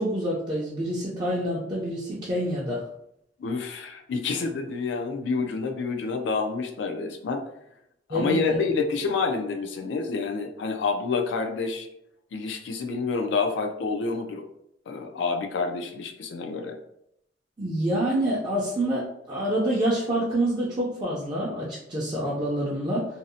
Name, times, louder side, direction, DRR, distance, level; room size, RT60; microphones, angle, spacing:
voice 1, 0.0-2.8 8.1-8.7 17.6-23.1, right 1 dB, 25° right, -7 dB, 0.4 m, -27 dB
voice 2, 3.4-7.4 8.1-11.9 12.3-14.4 14.9-16.8, left 4 dB, 85° left, 4 dB, 0.4 m, -28 dB
2.6 x 2.0 x 2.6 m, 0.77 s
head